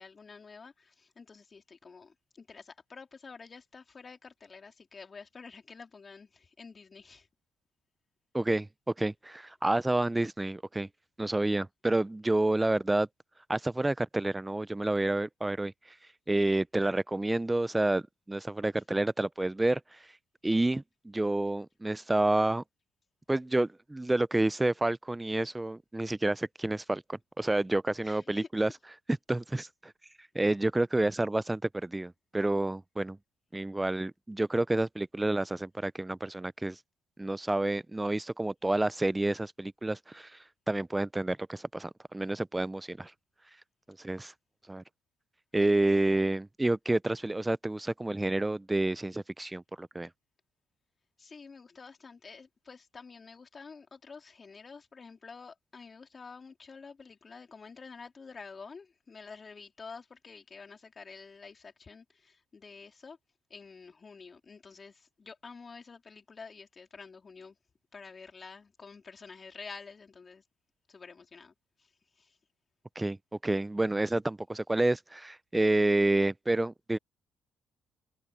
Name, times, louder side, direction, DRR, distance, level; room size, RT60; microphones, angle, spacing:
voice 1, 0.0-7.3 28.0-28.7 51.2-63.2 63.5-67.6 67.9-70.4 70.9-72.4, left 5 dB, 40° left, 3.7 m, -49 dB
voice 2, 8.3-10.9 11.2-13.1 13.5-15.7 16.3-20.1 20.4-22.6 23.3-28.7 29.3-29.9 30.3-33.2 33.5-36.8 37.2-40.4 40.7-43.1 44.0-44.3 44.7-44.8 45.5-50.1 73.0-73.2 73.4-77.0, right 2 dB, 15° right, 0.6 m, -29 dB
supercardioid pair, 60°, 0 cm